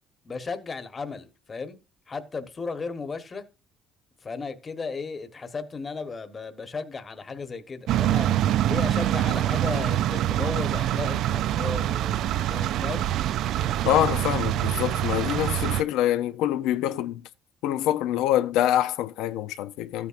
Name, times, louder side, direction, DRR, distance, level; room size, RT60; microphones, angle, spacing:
voice 1, 0.2-1.8 2.1-3.4 4.2-13.1 15.2-15.5, left 4 dB, 25° left, 1.2 m, -35 dB
sound 1, 7.9-15.8, right 12 dB, 60° right, 0.4 m, -25 dB
voice 2, 13.8-17.2 17.6-20.1, left 12 dB, 90° left, 0.6 m, -25 dB
13.5 x 8.6 x 2.5 m
cardioid pair, 155°, 0 cm